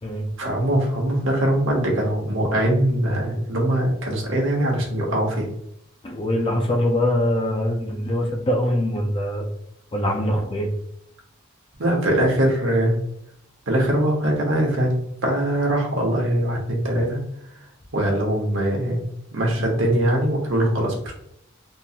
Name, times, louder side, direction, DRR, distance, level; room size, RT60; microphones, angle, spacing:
voice 1, 0.4-5.5 11.8-13.0 13.7-17.2 17.9-19.0 19.3-21.1, right 1 dB, 65° right, -1 dB, 1.0 m, -22 dB
voice 2, 6.0-9.5 9.9-10.7, left 1 dB, 25° left, 2 dB, 0.4 m, -23 dB
3.7 x 2.5 x 2.8 m, 0.75 s
head